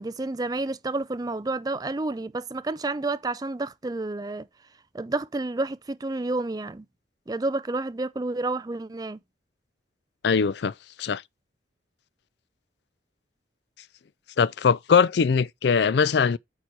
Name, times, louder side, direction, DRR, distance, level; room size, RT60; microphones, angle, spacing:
voice 1, 0.0-4.4 4.9-6.8 7.3-9.2, right 2 dB, 20° right, 0.4 m, -30 dB
voice 2, 10.2-10.7 11.0-11.2 14.4-16.4, left 6 dB, 60° left, 0.4 m, -21 dB
8.8 x 4.2 x 4.7 m
head